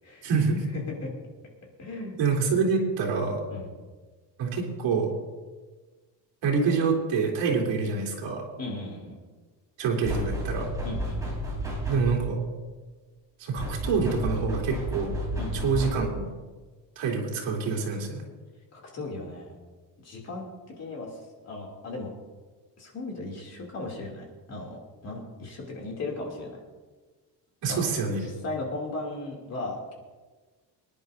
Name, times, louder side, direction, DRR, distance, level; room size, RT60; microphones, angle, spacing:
voice 1, 0.2-0.6 2.2-3.4 4.4-5.1 6.4-8.5 9.8-10.7 11.9-12.4 13.4-15.1 15.5-16.3 17.0-18.2 27.6-28.3, right 5 dB, 75° right, -1 dB, 3.3 m, -26 dB
voice 2, 0.7-1.1 1.8-2.2 3.5-3.7 7.6-7.7 8.6-9.2 10.8-11.3 15.4-15.6 18.7-19.6 20.0-20.5 20.8-22.1 22.8-26.6 27.7-27.9 28.2-29.9, left 2 dB, 35° left, -1 dB, 2.9 m, -36 dB
sound 1, 10.0-12.3 13.6-16.2, equal, 10° right, 3.7 m, -31 dB
25.0 x 10.5 x 2.7 m, 1.3 s
cardioid pair, 175°, 44 cm